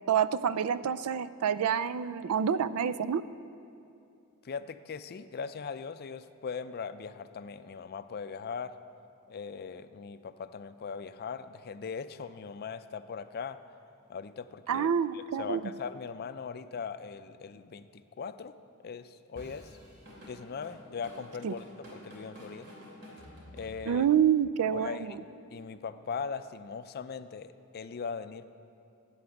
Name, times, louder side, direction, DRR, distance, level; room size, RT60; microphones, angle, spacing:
voice 1, 0.1-3.2 14.7-15.6 21.4-21.5 23.9-25.1, right 8 dB, 85° right, 15 dB, 0.4 m, -27 dB
voice 2, 4.4-8.7 9.3-13.6 14.1-14.9 15.1-18.5 18.8-19.7 20.3-21.6 21.9-22.7 23.5-24.1 24.7-25.2 25.5-28.4, left 5 dB, 45° left, 12 dB, 0.4 m, -40 dB
Drum kit / Drum, 19.4-24.2, equal, 55° right, 2.9 m, -49 dB
13.0 x 8.6 x 7.0 m, 2.6 s
head